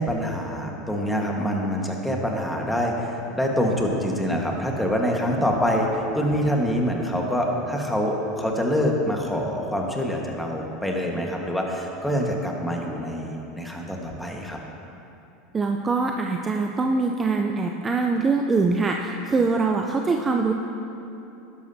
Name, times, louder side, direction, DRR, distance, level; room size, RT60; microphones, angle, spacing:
voice 1, 0.0-14.6, equal, 5° left, 0 dB, 1.5 m, -25 dB
voice 2, 15.5-20.5, right 4 dB, 20° right, 3 dB, 0.5 m, -23 dB
12.0 x 11.0 x 2.8 m, 2.8 s
supercardioid pair, 110°, 0 cm